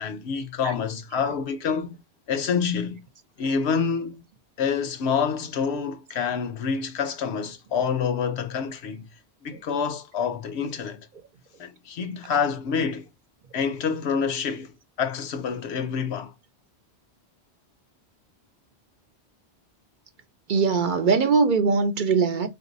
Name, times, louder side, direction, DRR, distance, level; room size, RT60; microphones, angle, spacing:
voice 1, 0.0-2.0 2.3-3.0 3.4-4.2 4.6-9.1 9.4-11.1 11.6-13.1 13.5-16.3, left 6 dB, 80° left, 1.0 m, -27 dB
voice 2, 20.5-22.5, right 5 dB, 55° right, 0.6 m, -21 dB
3.9 x 2.6 x 3.9 m
omnidirectional pair, 1.1 m